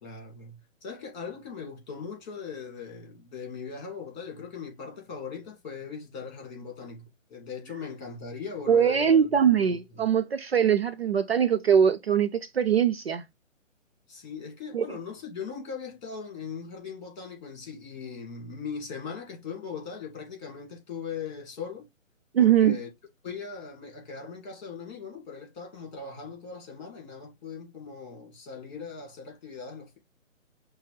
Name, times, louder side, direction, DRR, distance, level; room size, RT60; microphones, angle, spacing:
voice 1, 0.0-10.0 14.1-21.9 22.4-22.9 23.2-30.0, left 5 dB, 35° left, 2.1 m, -40 dB
voice 2, 8.7-13.2 14.7-14.8 22.3-22.8, right 8 dB, 50° right, 0.4 m, -22 dB
5.6 x 2.2 x 3.2 m
hypercardioid pair, 155°, 40 cm